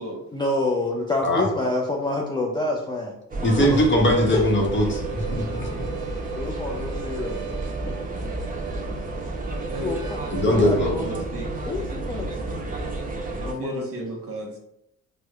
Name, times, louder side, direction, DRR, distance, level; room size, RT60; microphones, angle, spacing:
voice 1, 0.3-3.1 3.6-3.8 4.3-4.4 6.3-7.4 7.9-8.0 9.8-11.1 11.7-12.3 13.4-13.9, left 2 dB, 15° left, -1 dB, 0.4 m, -27 dB
sound 1, 3.3-13.5, right 2 dB, 30° right, 0.6 m, -31 dB
voice 2, 3.4-5.0 5.3-5.9 10.3-11.2, equal, 40° left, -1 dB, 0.9 m, -21 dB
Harmonica, 3.5-10.8, right 5 dB, 85° right, 0.5 m, -39 dB
voice 3, 9.5-10.0 10.3-11.5 13.3-14.6, equal, 50° right, -1 dB, 1.0 m, -35 dB
4.5 x 2.1 x 2.3 m, 0.79 s
cardioid pair, 90°, 30 cm